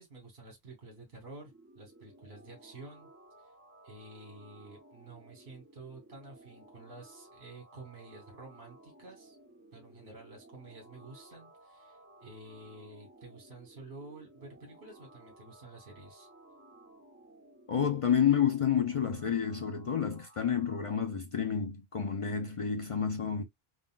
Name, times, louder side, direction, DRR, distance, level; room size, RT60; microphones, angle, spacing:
voice 1, 0.0-3.1 3.4-3.5 3.8-9.4 9.7-16.3, right 2 dB, 60° right, 1.2 m, -50 dB
sound 1, 1.0-20.9, right 2 dB, 15° right, 0.8 m, -57 dB
voice 2, 17.7-23.4, left 8 dB, 60° left, 0.3 m, -29 dB
3.7 x 2.2 x 2.2 m
omnidirectional pair, 1.0 m